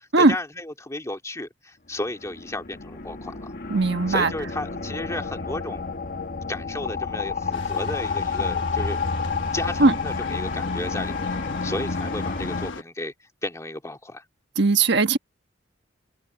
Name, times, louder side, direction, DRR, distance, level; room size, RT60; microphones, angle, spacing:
voice 1, 0.0-3.5 4.1-5.9 6.5-14.2, left 1 dB, 15° left, 2.2 m, -34 dB
sound 1, 2.1-12.7, left 4 dB, 50° left, 1.4 m, -30 dB
voice 2, 3.7-4.3 9.8-9.9 14.6-15.2, right 3 dB, 60° right, 1.4 m, -18 dB
sound 2, 7.5-12.8, left 3 dB, 75° left, 1.2 m, -39 dB
head